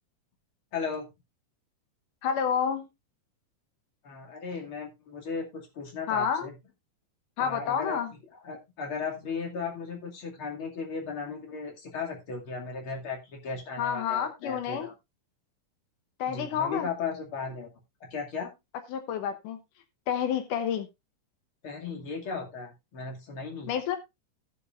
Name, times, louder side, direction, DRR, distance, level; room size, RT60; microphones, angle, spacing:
voice 1, 0.7-1.1 4.0-6.5 7.4-8.2 8.4-14.9 16.3-17.7 18.1-18.5 21.6-23.8, left 5 dB, 45° left, 0 dB, 3.1 m, -36 dB
voice 2, 2.2-2.9 6.1-6.5 7.4-8.1 13.8-14.9 16.2-16.9 18.9-19.6 20.1-20.9 23.7-24.0, left 8 dB, 90° left, 8 dB, 2.7 m, -29 dB
16.5 x 7.2 x 2.5 m, 0.22 s
omnidirectional pair, 3.6 m